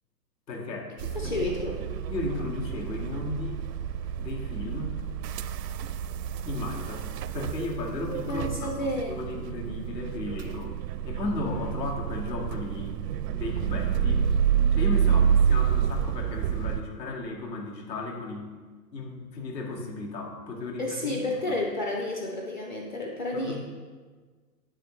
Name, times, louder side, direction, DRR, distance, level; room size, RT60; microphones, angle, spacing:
voice 1, 0.5-0.9 1.2-1.5 2.1-3.6 4.2-5.0 6.4-10.8 11.1-13.0 13.2-14.3 14.7-18.5 18.9-21.2 21.5-21.6 23.3-23.6, left 2 dB, 80° left, 0 dB, 2.0 m, -35 dB
voice 2, 1.0-1.8 8.3-9.1 20.8-23.6, left 2 dB, 30° left, -1 dB, 0.6 m, -31 dB
sound 1, 1.0-16.8, right 8 dB, 75° right, 0.6 m, -28 dB
9.9 x 7.5 x 3.1 m, 1.5 s
hypercardioid pair, 155°, 50 cm